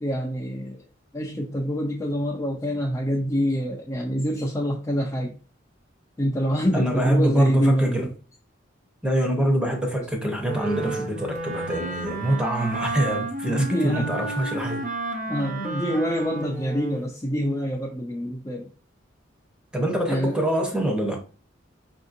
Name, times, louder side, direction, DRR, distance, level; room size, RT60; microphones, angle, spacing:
voice 1, 0.0-0.8 1.1-5.4 6.2-8.1 13.4-14.3 15.3-18.7 20.1-20.4, equal, 15° left, 0.5 m, -26 dB
voice 2, 6.7-8.0 9.0-14.9 19.7-21.2, right 1 dB, 5° right, 0.8 m, -25 dB
Wind instrument woodwind instrument, 10.4-17.1, right 2 dB, 40° right, 0.6 m, -32 dB
5.4 x 2.7 x 2.5 m
head